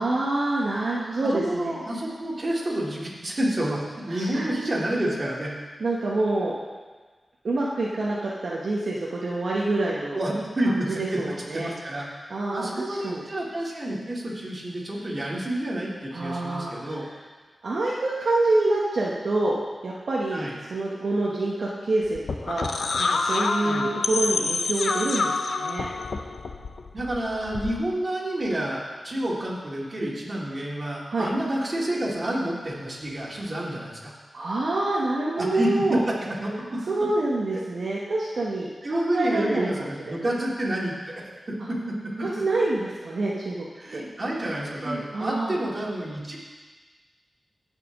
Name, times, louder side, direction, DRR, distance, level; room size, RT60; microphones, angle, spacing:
voice 1, 0.0-1.7 4.1-4.5 5.8-6.6 7.4-10.2 10.7-11.7 12.3-13.2 16.1-16.7 17.6-19.6 19.8-25.9 31.1-31.3 34.3-36.0 36.9-39.7 40.0-40.2 42.2-43.7 43.9-44.0 44.8-45.6, right 2 dB, 75° right, -5 dB, 1.1 m, -27 dB
voice 2, 1.2-3.8 4.1-5.5 10.1-11.2 11.5-12.1 12.5-17.0 20.3-20.6 23.6-23.9 26.9-34.1 35.3-36.0 36.4-36.8 38.8-41.2 41.5-42.1 43.8-46.4, right 1 dB, 40° right, -5 dB, 2.6 m, -29 dB
sound 1, 22.0-27.9, left 3 dB, 80° left, 0.6 m, -27 dB
16.0 x 5.8 x 3.6 m, 1.4 s
wide cardioid pair, 75°, 0 cm